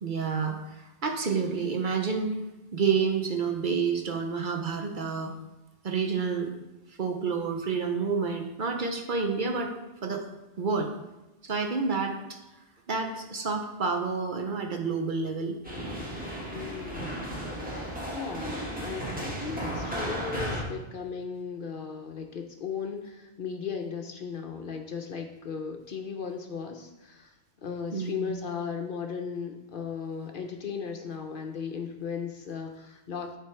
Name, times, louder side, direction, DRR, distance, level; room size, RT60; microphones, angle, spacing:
voice 1, 0.0-2.4 2.7-5.3 5.8-6.5 7.0-9.7 10.0-10.2 10.6-10.9 11.4-12.2 12.9-15.6 27.9-28.3, right 5 dB, 50° right, 3 dB, 0.8 m, -29 dB
sound 1, 15.6-20.6, equal, 5° right, 1.5 m, -34 dB
voice 2, 16.5-17.3 18.1-33.4, left 6 dB, 55° left, 4 dB, 0.8 m, -36 dB
10.5 x 3.5 x 4.5 m, 1.0 s
omnidirectional pair, 1.2 m